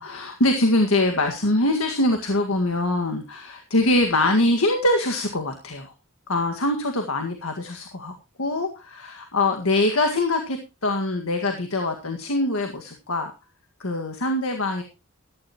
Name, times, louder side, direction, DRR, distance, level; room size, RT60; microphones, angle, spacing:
voice 1, 0.0-5.9 6.3-13.3 13.8-14.8, left 2 dB, 70° left, 5 dB, 1.9 m, -23 dB
14.5 x 13.0 x 3.0 m, 0.28 s
head